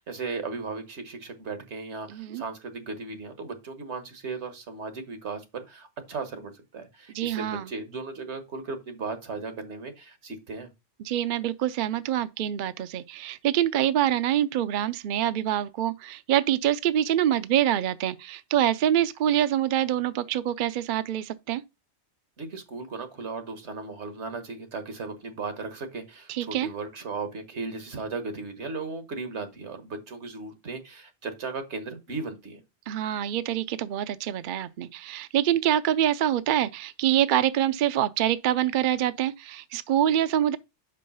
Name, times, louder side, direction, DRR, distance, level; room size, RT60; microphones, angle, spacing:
voice 1, 0.0-10.7 22.4-32.6, right 4 dB, 80° right, 1.6 m, -36 dB
voice 2, 2.1-2.4 7.1-7.7 11.0-21.6 26.3-26.7 32.9-40.6, right 11 dB, 60° right, 0.6 m, -25 dB
5.5 x 5.4 x 5.4 m
omnidirectional pair, 1.2 m